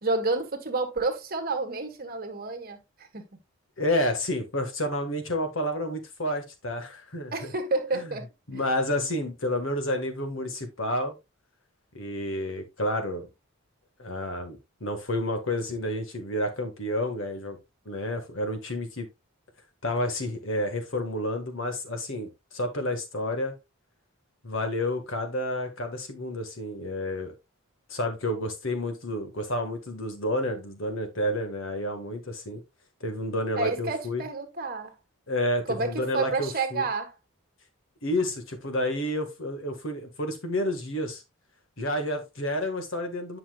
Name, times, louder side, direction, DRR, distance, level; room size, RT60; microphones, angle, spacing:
voice 1, 0.0-3.3 7.3-8.3 33.6-34.9 35.7-37.1, right 3 dB, 40° right, 1.5 m, -29 dB
voice 2, 3.8-7.5 7.9-8.1 8.5-11.2 11.9-13.3 14.0-17.6 17.9-19.1 19.8-23.5 24.4-27.3 27.9-32.6 33.0-34.2 35.3-36.9 38.0-41.2 41.8-43.4, left 1 dB, 60° left, 1.7 m, -30 dB
9.8 x 5.8 x 2.4 m
head